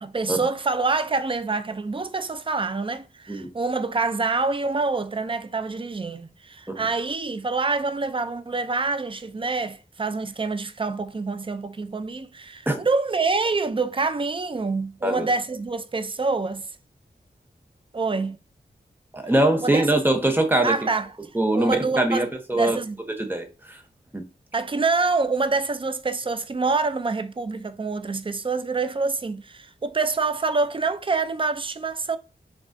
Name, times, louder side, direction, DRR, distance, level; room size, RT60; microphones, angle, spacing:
voice 1, 0.0-16.7 17.9-18.4 19.6-19.9 20.6-21.1 21.5-22.3 22.5-23.0 24.5-32.2, right 4 dB, 30° right, 0.4 m, -26 dB
voice 2, 19.1-20.7 21.3-22.8 23.2-23.8 24.1-24.2, right 1 dB, 10° right, 0.8 m, -22 dB
6.0 x 2.3 x 2.6 m
wide cardioid pair, 70°, 17 cm